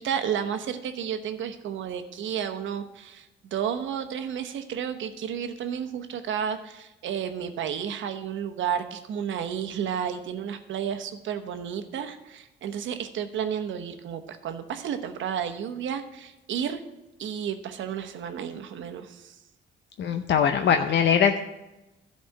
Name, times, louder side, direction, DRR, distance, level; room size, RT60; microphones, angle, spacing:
voice 1, 0.0-16.8 17.2-19.3, right 8 dB, 75° right, 8 dB, 1.0 m, -32 dB
voice 2, 20.0-21.4, left 7 dB, 65° left, 6 dB, 0.7 m, -21 dB
12.0 x 4.3 x 7.6 m, 1.0 s
cardioid pair, 90°, 20 cm